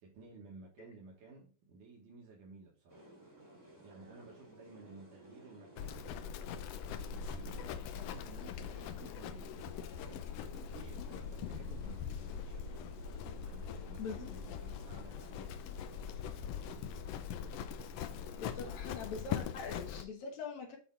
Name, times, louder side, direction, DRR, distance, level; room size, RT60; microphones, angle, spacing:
voice 1, 0.0-3.1 3.8-6.2 6.8-12.6 13.5-15.5 18.4-18.7, right 3 dB, 85° right, -3 dB, 3.0 m, -55 dB
sound 1, 2.9-19.9, right 1 dB, 10° right, 1.1 m, -57 dB
Livestock farm animals working animals, 5.8-20.1, left 7 dB, 85° left, 1.4 m, -42 dB
voice 2, 14.0-14.3 18.4-20.8, left 5 dB, 70° left, 1 dB, 2.4 m, -43 dB
8.1 x 4.1 x 4.5 m, 0.38 s
omnidirectional pair, 3.5 m